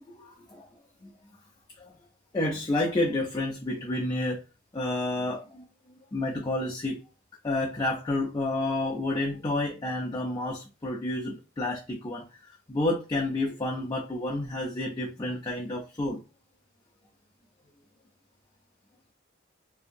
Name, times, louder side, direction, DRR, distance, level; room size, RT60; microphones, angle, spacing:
voice 1, 2.3-4.4 4.7-5.6 6.1-7.0 7.4-16.2, left 2 dB, 20° left, 0.3 m, -30 dB
2.7 x 2.5 x 2.5 m
head